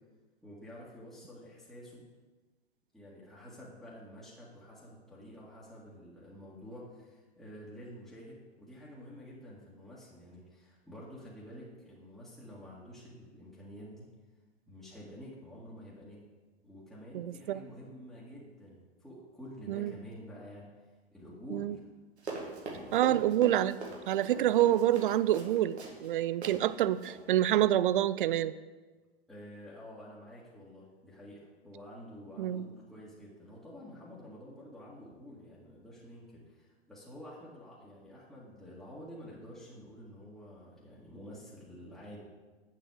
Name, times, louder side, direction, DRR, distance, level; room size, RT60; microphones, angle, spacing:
voice 1, 0.4-2.0 2.9-14.1 14.7-16.2 16.6-20.7 21.1-21.9 22.2-23.2 29.3-42.2, equal, ahead, -9 dB, 2.0 m, -49 dB
voice 2, 17.1-17.6 19.7-19.9 21.5-21.8 22.9-23.8 24.1-28.6 32.4-32.7, right 12 dB, 50° right, 16 dB, 0.5 m, -27 dB
Run, 22.2-26.1 26.4-26.6 26.9-27.2, right 3 dB, 75° right, 2.0 m, -42 dB
8.5 x 7.5 x 4.8 m, 1.3 s
figure-of-eight pair, 105°, 33 cm